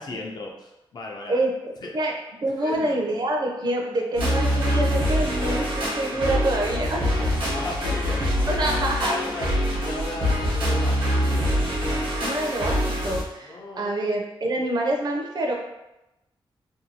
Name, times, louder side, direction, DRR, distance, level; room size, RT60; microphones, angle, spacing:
voice 1, 0.0-1.4 1.8-1.9 2.6-3.0 5.3-5.7 6.1-8.6 9.1-11.0 11.3-11.4 13.4-14.0, left 2 dB, 50° left, 0 dB, 0.5 m, -37 dB
voice 2, 1.3-2.1 2.4-7.0 8.5-9.1 12.2-15.5, right 1 dB, 50° right, 0 dB, 0.5 m, -26 dB
sound 1, 4.1-13.2, equal, 80° right, 0.9 m, -24 dB
2.6 x 2.3 x 2.7 m, 0.93 s
wide cardioid pair, 125°, 9 cm